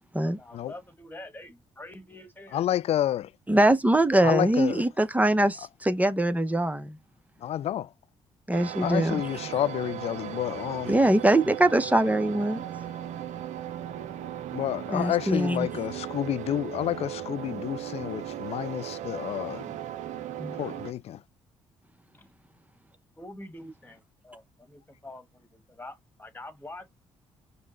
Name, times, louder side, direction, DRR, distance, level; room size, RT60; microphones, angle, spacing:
voice 1, 0.2-2.6 22.1-22.3 23.2-26.9, left 1 dB, 10° left, 1.5 m, -45 dB
voice 2, 2.5-3.3 4.2-4.8 7.4-7.9 8.8-11.0 14.5-19.7 20.6-21.2, left 11 dB, 45° left, 0.4 m, -29 dB
voice 3, 3.5-7.0 8.5-9.2 10.9-12.6 14.9-15.7 20.4-20.5, right 1 dB, 10° right, 0.8 m, -23 dB
sound 1, 8.5-20.9, right 11 dB, 55° right, 0.5 m, -37 dB
5.2 x 2.1 x 3.9 m
figure-of-eight pair, 45°, 15 cm